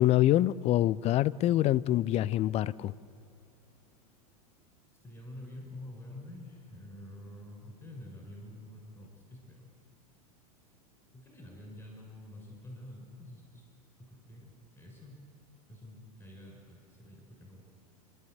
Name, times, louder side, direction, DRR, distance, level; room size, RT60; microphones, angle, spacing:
voice 1, 0.0-2.9, left 13 dB, 35° left, 0.5 m, -25 dB
voice 2, 5.0-9.7 10.6-10.7 11.1-13.6 14.0-15.2 15.7-17.6, left 1 dB, 10° left, 6.3 m, -48 dB
29.5 x 12.5 x 8.1 m
hypercardioid pair, 100°, 19 cm